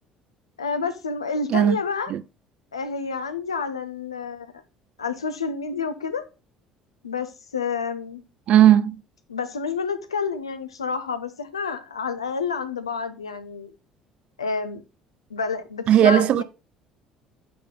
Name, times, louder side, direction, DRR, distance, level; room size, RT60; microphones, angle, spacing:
voice 1, 0.6-2.1 2.7-4.5 5.0-6.2 7.0-8.2 9.3-13.7 14.4-14.8 15.3-16.4, left 5 dB, 85° left, 0.7 m, -29 dB
voice 2, 8.5-8.9 15.9-16.4, right 11 dB, 50° right, 0.3 m, -16 dB
8.5 x 3.9 x 3.8 m
figure-of-eight pair, 55°, 3 cm